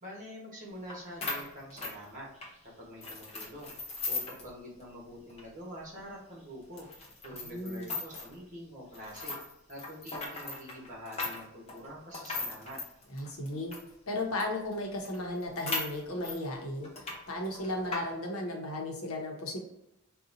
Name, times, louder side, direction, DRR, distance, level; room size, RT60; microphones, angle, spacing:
voice 1, 0.0-2.3 2.8-3.7 4.1-6.9 7.2-9.4 9.7-12.8, equal, 35° right, -4 dB, 1.1 m, -46 dB
sound 1, 0.9-1.0 1.2-2.5 3.0-4.5 4.8-4.9 5.3-5.4 6.0-6.1 6.8-8.3 8.9-13.9 14.4-14.5 14.7-14.8 15.0-16.4 16.8-17.2 17.4-18.0, left 3 dB, 30° left, 0.6 m, -38 dB
voice 2, 7.4-7.9 13.1-13.7 14.1-16.9 17.3-19.6, left 1 dB, 75° left, 1 dB, 0.8 m, -35 dB
3.9 x 2.3 x 2.6 m, 0.82 s
head